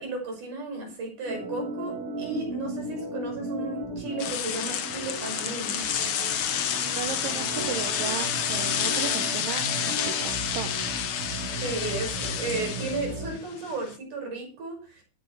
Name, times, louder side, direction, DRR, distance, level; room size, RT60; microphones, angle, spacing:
voice 1, 0.0-5.9 11.6-15.0, right 3 dB, 60° right, 1 dB, 7.7 m, -34 dB
Organ, 1.2-13.4, right 2 dB, 30° right, 1.4 m, -36 dB
sound 1, 4.2-13.9, left 9 dB, 70° left, 1.3 m, -29 dB
voice 2, 6.8-10.9, right 10 dB, 75° right, 8 dB, 2.7 m, -36 dB
19.5 x 10.5 x 3.4 m, 0.36 s
omnidirectional pair, 4.1 m